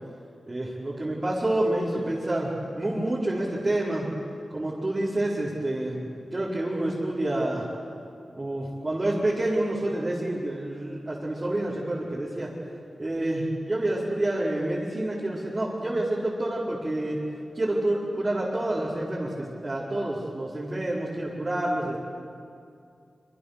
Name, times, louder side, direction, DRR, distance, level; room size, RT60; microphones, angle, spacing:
voice 1, 0.5-4.1 4.5-7.6 8.3-12.5 13.0-17.2 17.5-22.0, right 1 dB, 30° right, -7 dB, 4.7 m, -28 dB
26.0 x 25.5 x 6.8 m, 2.5 s
wide cardioid pair, 95°, 0 cm